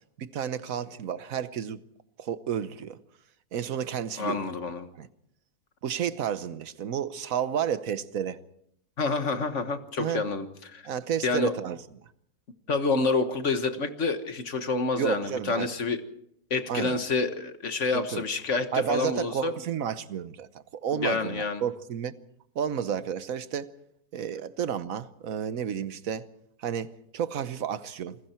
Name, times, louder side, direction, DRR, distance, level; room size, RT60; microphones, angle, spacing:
voice 1, 0.2-1.8 2.2-3.0 3.5-4.5 5.0-5.1 5.8-8.4 10.0-10.2 10.8-11.8 15.0-15.7 16.7-17.0 17.9-18.2 18.7-22.1 22.5-23.7 24.1-26.3 26.6-28.2, right 8 dB, 55° right, 1.3 m, -31 dB
voice 2, 4.2-4.9 9.0-10.5 10.7-10.8 11.2-11.5 12.7-16.0 16.5-19.5 20.9-21.6, left 3 dB, 45° left, 1.6 m, -28 dB
28.0 x 20.5 x 4.5 m
omnidirectional pair, 1.9 m